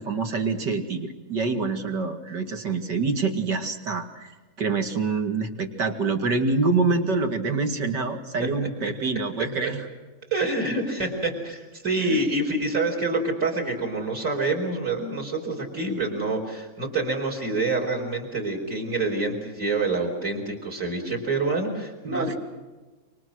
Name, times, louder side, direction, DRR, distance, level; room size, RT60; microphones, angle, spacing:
voice 1, 0.0-9.8 12.1-12.2 22.0-22.4, right 4 dB, 60° right, 5 dB, 2.8 m, -26 dB
voice 2, 10.3-22.4, right 2 dB, 40° right, 1 dB, 5.1 m, -27 dB
28.5 x 25.0 x 6.4 m, 1.2 s
omnidirectional pair, 2.1 m